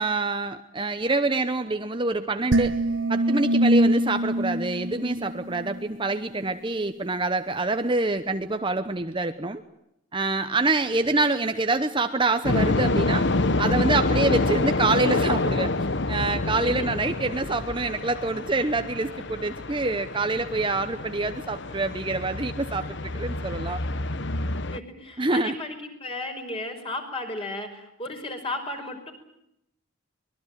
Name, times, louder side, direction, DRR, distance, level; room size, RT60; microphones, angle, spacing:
voice 1, 0.0-2.7 3.1-9.6 10.1-13.3 13.6-23.8 25.2-25.6, right 3 dB, 25° right, 9 dB, 0.9 m, -26 dB
sound 1, 2.5-5.9, right 1 dB, 60° right, 1.2 m, -24 dB
sound 2, 12.4-24.8, left 2 dB, 55° left, 1.1 m, -27 dB
voice 2, 24.7-29.1, left 2 dB, 25° left, 5 dB, 5.3 m, -34 dB
24.5 x 21.5 x 9.1 m, 0.80 s
head